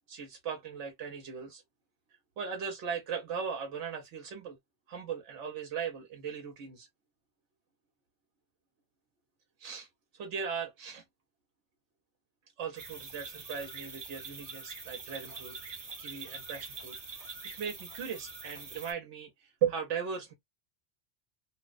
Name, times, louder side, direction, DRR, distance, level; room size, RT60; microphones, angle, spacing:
voice 1, 0.1-1.6 2.4-4.6 4.9-6.9 9.6-9.9 10.1-11.0 12.6-17.0 17.4-20.3, right 7 dB, 85° right, 1.0 m, -38 dB
sound 1, 12.8-18.9, right 4 dB, 40° right, 0.7 m, -44 dB
2.8 x 2.1 x 2.3 m
omnidirectional pair, 1.2 m